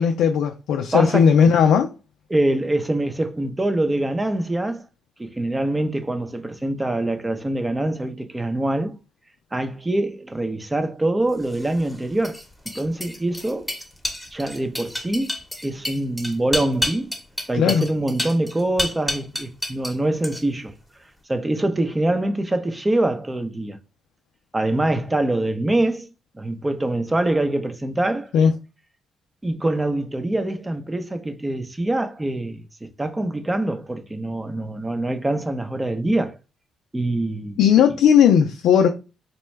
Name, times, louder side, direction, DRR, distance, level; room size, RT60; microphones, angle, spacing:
voice 1, 0.0-1.9 17.5-17.8 28.3-28.5 37.6-38.9, left 7 dB, 80° left, 0.4 m, -16 dB
voice 2, 0.9-1.4 2.3-4.9 5.2-9.0 9.5-12.4 12.7-13.7 14.3-15.3 15.6-17.1 17.5-20.7 21.3-23.8 24.5-28.3 29.4-36.4 36.9-37.6, right 1 dB, 15° right, 0.6 m, -24 dB
sound 1, 11.4-20.0 20.2-20.7, left 1 dB, 5° left, 1.0 m, -30 dB
4.1 x 2.2 x 3.1 m
cardioid pair, 90°, 0 cm